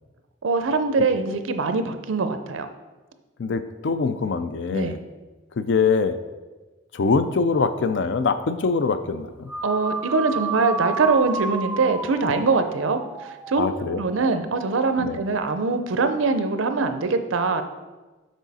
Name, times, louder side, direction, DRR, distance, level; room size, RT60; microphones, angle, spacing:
voice 1, 0.4-2.7 4.7-5.0 9.6-17.6, right 4 dB, 90° right, 8 dB, 0.6 m, -23 dB
voice 2, 3.4-5.0 5.6-6.2 6.9-9.5 13.6-14.0 15.0-15.2, left 4 dB, 65° left, 11 dB, 0.4 m, -23 dB
sound 1, 9.5-14.0, right 5 dB, 10° right, 0.3 m, -31 dB
6.2 x 4.9 x 4.1 m, 1.2 s
head